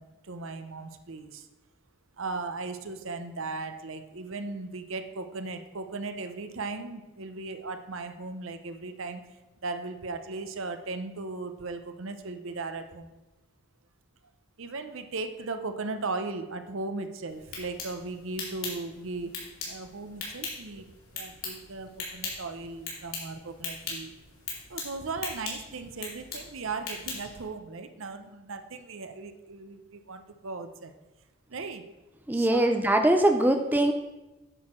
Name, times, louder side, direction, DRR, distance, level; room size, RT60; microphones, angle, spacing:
voice 1, 0.0-1.5 2.2-9.2 9.6-13.1 14.6-19.4 19.7-24.1 24.7-30.9 31.5-31.9 32.3-32.8, right 3 dB, 65° right, 8 dB, 0.8 m, -37 dB
sound 1, 17.3-27.5, left 4 dB, 70° left, 3.1 m, -40 dB
voice 2, 32.3-33.9, right 1 dB, 10° right, 5 dB, 0.4 m, -22 dB
10.0 x 6.5 x 4.4 m, 1.1 s
head